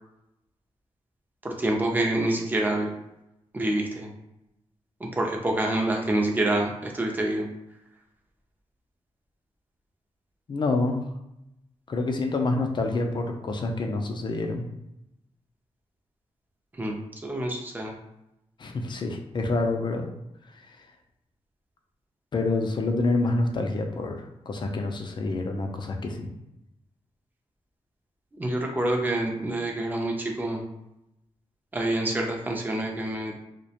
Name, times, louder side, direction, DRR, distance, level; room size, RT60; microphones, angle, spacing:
voice 1, 1.4-2.9 3.5-4.1 5.0-7.5 16.8-17.9 28.4-30.6 31.7-33.3, right 1 dB, 15° right, 1 dB, 0.5 m, -27 dB
voice 2, 10.5-11.0 11.9-14.7 18.6-20.1 22.3-26.3, left 2 dB, 40° left, 4 dB, 0.4 m, -27 dB
2.3 x 2.1 x 2.8 m, 0.87 s
cardioid pair, 95°, 11 cm